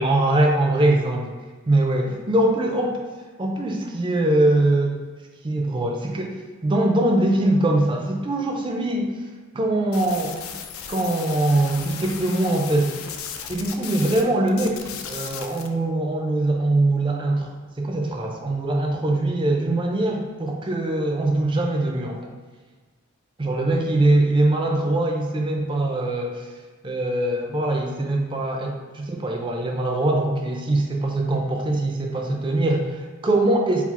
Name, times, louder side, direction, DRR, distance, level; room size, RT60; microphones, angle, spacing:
voice 1, 0.0-1.3 1.7-3.0 3.4-5.0 5.4-6.4 6.6-9.2 9.5-10.4 10.9-13.0 13.5-22.3 23.4-26.5 26.8-33.8, right 2 dB, 25° right, 2 dB, 0.4 m, -22 dB
sound 1, 9.9-14.2 14.5-15.7, left 7 dB, 80° left, 0.4 m, -36 dB
4.7 x 2.0 x 4.1 m, 1.4 s
head